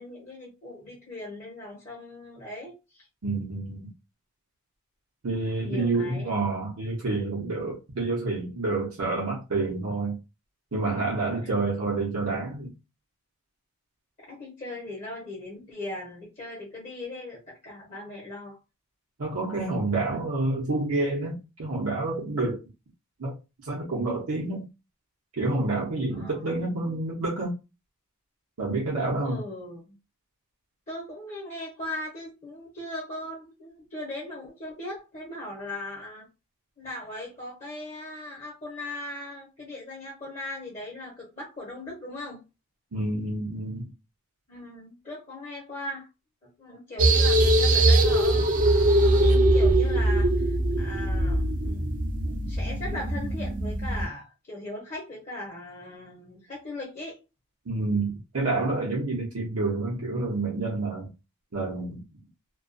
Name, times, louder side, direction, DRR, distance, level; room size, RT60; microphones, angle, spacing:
voice 1, 0.0-3.1 5.6-6.3 11.4-11.5 14.3-18.6 26.1-26.6 29.2-30.0 30.9-36.2 36.8-42.4 44.5-46.1 46.6-48.7 49.0-51.9 52.2-57.2, left 1 dB, 35° left, 0.7 m, -39 dB
voice 2, 3.2-3.9 5.2-10.2 10.7-12.7 19.2-21.3 21.6-22.6 23.2-23.3 23.6-24.7 25.3-27.5 28.6-29.4 42.9-43.9 57.7-61.1 61.5-62.0, right 2 dB, 80° right, 0.7 m, -28 dB
sound 1, 47.0-54.1, right 1 dB, 40° right, 0.4 m, -22 dB
2.3 x 2.2 x 2.5 m
head